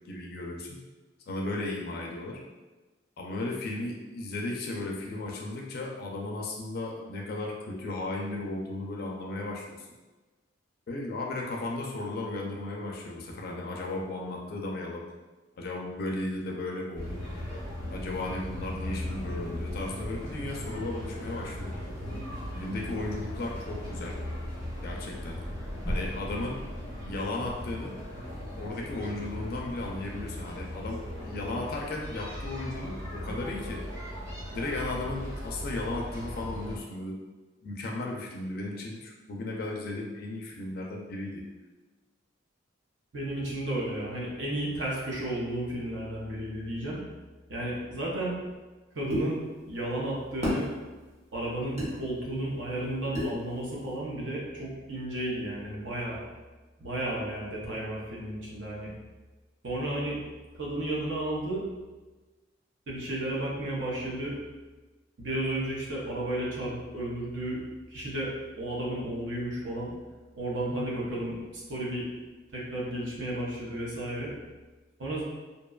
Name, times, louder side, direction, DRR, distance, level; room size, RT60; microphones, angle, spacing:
voice 1, 0.1-0.8 1.3-2.4 3.2-9.9 10.9-15.0 15.6-17.2 17.9-21.7 22.6-24.2 24.8-25.4 25.9-26.6 27.0-28.0 28.6-33.8 34.5-37.1 37.6-41.4, left 2 dB, 50° left, -1 dB, 0.4 m, -35 dB
sound 1, 16.9-36.8, left 1 dB, 20° right, 1.1 m, -37 dB
voice 2, 43.1-47.0 47.5-48.4 48.9-50.7 51.3-56.2 56.8-58.9 59.6-60.2 60.5-61.6 62.9-64.4 65.2-67.6 67.9-68.3 68.6-69.9 70.3-72.1 72.5-74.3 75.0-75.2, right 1 dB, 70° right, -4 dB, 0.7 m, -33 dB
sound 2, 49.1-49.3 50.4-50.6 51.8-51.9 53.1-53.4, equal, 35° right, 0.7 m, -29 dB
2.6 x 2.2 x 2.3 m, 1.2 s
head